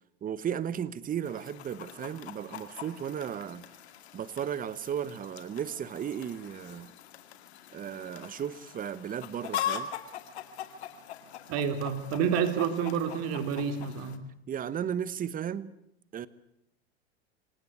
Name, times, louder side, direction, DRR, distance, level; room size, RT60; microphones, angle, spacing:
voice 1, 0.2-3.7 4.1-6.9 7.7-9.9 14.5-15.7 16.1-16.3, right 9 dB, 25° right, 1.2 m, -35 dB
Chicken rooster, 1.2-14.2, left 10 dB, 80° left, 2.4 m, -41 dB
voice 2, 11.5-14.2, right 7 dB, 50° right, 3.2 m, -29 dB
26.5 x 18.0 x 8.2 m
hypercardioid pair, 110°, 33 cm